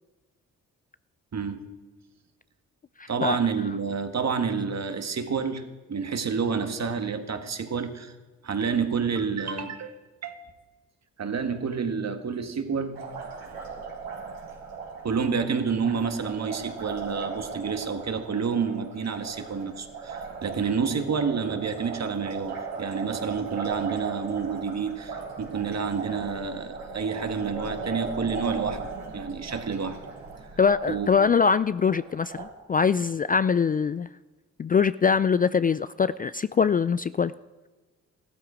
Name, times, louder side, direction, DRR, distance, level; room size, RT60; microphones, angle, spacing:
voice 1, 1.3-1.7 3.1-5.6 5.9-8.1 8.4-10.5 11.2-13.0 15.0-28.9 29.1-30.0 30.9-31.3, right 5 dB, 50° right, 8 dB, 1.7 m, -29 dB
voice 2, 3.0-3.4 30.6-34.1 34.6-37.3, left 6 dB, 25° left, 16 dB, 0.3 m, -23 dB
Liquid, 12.9-32.5, right 5 dB, 80° right, 3.3 m, -38 dB
15.0 x 13.0 x 5.0 m, 1.3 s
hypercardioid pair, 40°, 34 cm